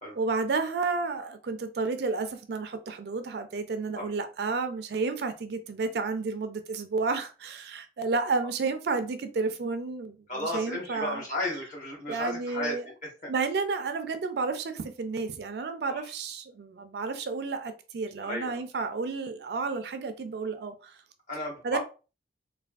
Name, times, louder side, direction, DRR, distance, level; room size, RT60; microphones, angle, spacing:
voice 1, 0.2-11.2 12.1-12.8 13.3-21.0 21.6-21.8, right 4 dB, 60° right, 9 dB, 0.4 m, -31 dB
voice 2, 10.3-12.7 13.0-13.3 15.9-16.1 18.2-18.6 21.3-21.8, left 1 dB, 40° left, -4 dB, 1.4 m, -34 dB
3.3 x 2.2 x 2.3 m, 0.33 s
head